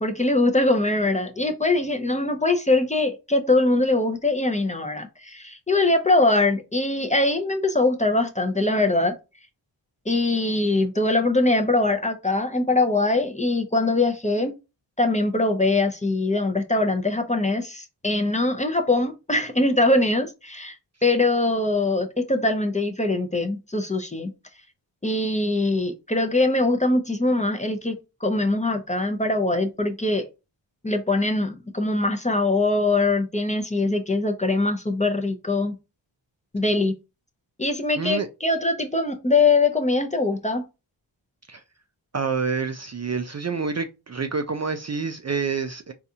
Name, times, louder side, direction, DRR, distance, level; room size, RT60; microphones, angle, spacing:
voice 1, 0.0-9.1 10.1-14.5 15.0-20.8 21.0-24.3 25.0-27.9 28.2-30.2 30.8-35.8 36.5-36.9 37.6-40.7, left 2 dB, 15° left, 0.6 m, -22 dB
voice 2, 38.0-38.3 41.5-41.6 42.1-45.9, right 5 dB, 35° right, 0.4 m, -27 dB
4.0 x 2.4 x 2.7 m
cardioid pair, 55°, 48 cm